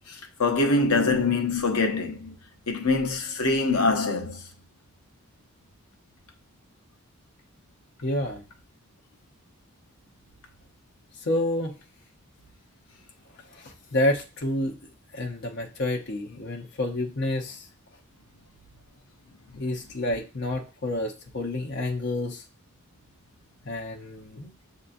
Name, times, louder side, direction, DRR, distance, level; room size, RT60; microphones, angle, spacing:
voice 1, 0.1-2.3 2.7-4.5 19.5-19.6, left 3 dB, 80° left, 0.9 m, -24 dB
voice 2, 8.0-8.4 11.2-11.7 13.5-14.8 15.1-17.7 19.6-22.4 23.6-24.5, left 1 dB, 50° left, 0.8 m, -29 dB
6.6 x 2.8 x 2.5 m
head